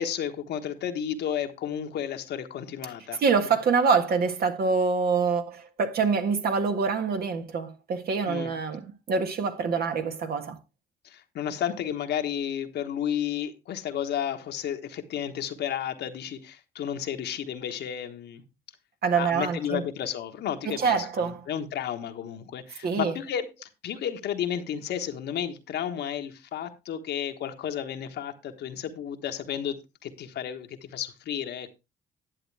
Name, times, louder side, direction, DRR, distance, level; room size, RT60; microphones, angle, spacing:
voice 1, 0.0-3.2 8.2-8.5 11.0-18.4 19.1-31.7, left 9 dB, 75° left, 1.3 m, -32 dB
voice 2, 3.2-10.6 19.0-19.8 20.7-21.4 22.8-23.2, right 5 dB, 60° right, 1.6 m, -25 dB
10.5 x 7.9 x 3.4 m
supercardioid pair, 70°, 18 cm